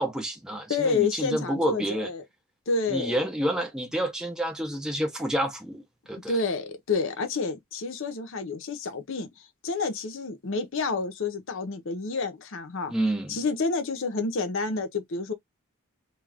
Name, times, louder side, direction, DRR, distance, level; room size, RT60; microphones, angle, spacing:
voice 1, 0.0-2.1 2.9-5.8 6.1-6.4 12.9-13.4, right 1 dB, 5° right, 0.5 m, -29 dB
voice 2, 0.7-2.2 2.7-3.3 6.3-9.3 9.6-12.9 13.3-15.3, left 4 dB, 60° left, 0.6 m, -29 dB
2.4 x 2.3 x 3.3 m
head